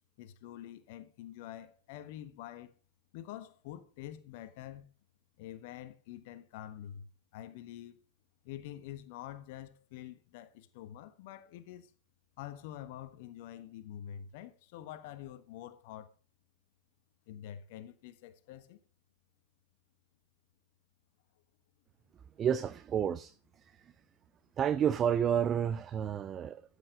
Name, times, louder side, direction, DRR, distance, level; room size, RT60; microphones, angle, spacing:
voice 1, 0.2-2.7 3.1-4.9 5.4-7.1 7.3-8.0 8.4-11.9 12.4-16.1 17.3-18.8, left 11 dB, 50° left, 1.3 m, -46 dB
voice 2, 22.4-23.9 24.6-26.6, right 8 dB, 25° right, 0.5 m, -31 dB
13.5 x 8.4 x 5.1 m
figure-of-eight pair, 90°, 0 cm